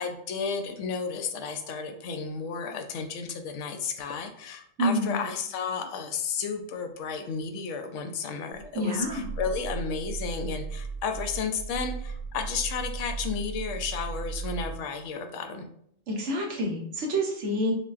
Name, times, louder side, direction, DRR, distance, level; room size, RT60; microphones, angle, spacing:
voice 1, 0.0-15.7, left 5 dB, 70° left, 5 dB, 0.9 m, -33 dB
voice 2, 4.8-5.2 8.7-9.3 16.1-17.7, equal, 65° right, 0 dB, 1.1 m, -28 dB
Growling, 8.5-14.9, right 5 dB, 30° right, 1.7 m, -36 dB
6.2 x 2.2 x 2.4 m, 0.69 s
omnidirectional pair, 1.4 m